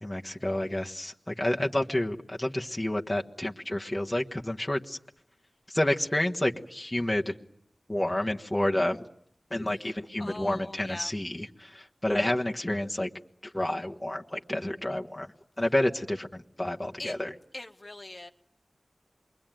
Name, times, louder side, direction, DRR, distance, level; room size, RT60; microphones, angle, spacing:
voice 1, 0.0-5.0 5.7-7.3 7.9-9.1 9.5-13.1 13.4-15.3 15.6-17.3, left 1 dB, 20° left, 1 dB, 1.4 m, -29 dB
voice 2, 10.2-11.1 17.0-17.2 17.5-18.3, left 2 dB, 40° left, 5 dB, 1.5 m, -42 dB
28.0 x 22.5 x 9.2 m, 0.69 s
wide cardioid pair, 55°, 0 cm